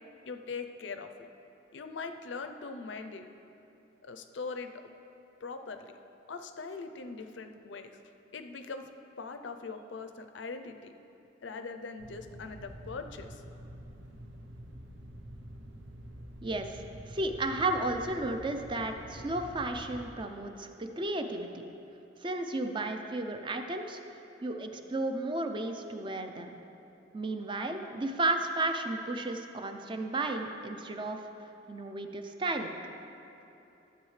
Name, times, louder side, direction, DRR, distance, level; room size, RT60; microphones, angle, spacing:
voice 1, 0.2-1.1 1.7-3.3 4.0-4.8 5.4-5.9 6.3-8.0 8.3-8.9 9.2-10.9 11.4-13.4, left 4 dB, 70° left, 7 dB, 0.5 m, -41 dB
sound 1, 12.0-20.1, equal, 80° right, 0.8 m, -47 dB
voice 2, 16.4-21.7 22.2-24.0 24.4-26.5 27.1-31.2 31.7-32.7, right 2 dB, 25° right, 6 dB, 0.5 m, -33 dB
13.0 x 7.8 x 3.2 m, 2.9 s
head